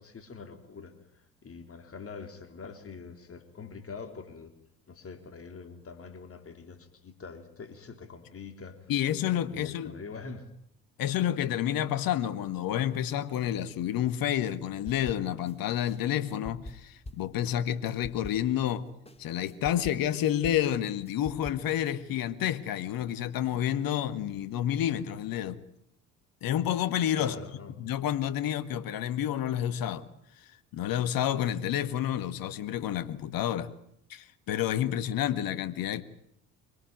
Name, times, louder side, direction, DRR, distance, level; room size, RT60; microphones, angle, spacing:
voice 1, 0.0-4.5 4.9-8.9 9.5-10.5 27.2-27.7, left 5 dB, 35° left, 3.7 m, -44 dB
voice 2, 8.9-10.0 11.0-18.8 19.2-25.6 26.4-27.3 27.8-30.1 30.7-33.7 34.1-36.0, left 11 dB, 55° left, 1.8 m, -29 dB
sound 1, 14.9-15.5 15.9-18.7 19.1-21.9, left 1 dB, 15° left, 3.1 m, -46 dB
25.5 x 18.5 x 9.4 m
hypercardioid pair, 60°, 41 cm